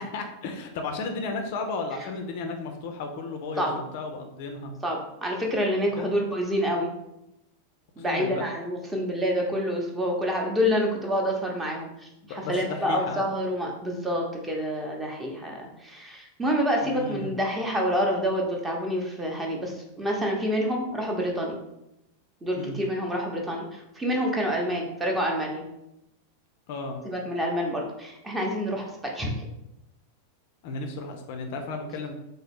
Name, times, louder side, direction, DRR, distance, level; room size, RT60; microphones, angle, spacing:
voice 1, 0.0-4.7 6.0-6.1 8.0-8.4 12.3-13.2 16.8-17.4 22.5-22.8 26.7-27.0 30.6-32.1, left 3 dB, 50° left, 4 dB, 0.4 m, -34 dB
voice 2, 4.8-6.9 8.0-11.9 12.3-21.6 22.4-25.6 27.0-29.4, equal, 10° right, 0 dB, 0.7 m, -27 dB
3.8 x 2.0 x 3.4 m, 0.86 s
figure-of-eight pair, 90°, 0 cm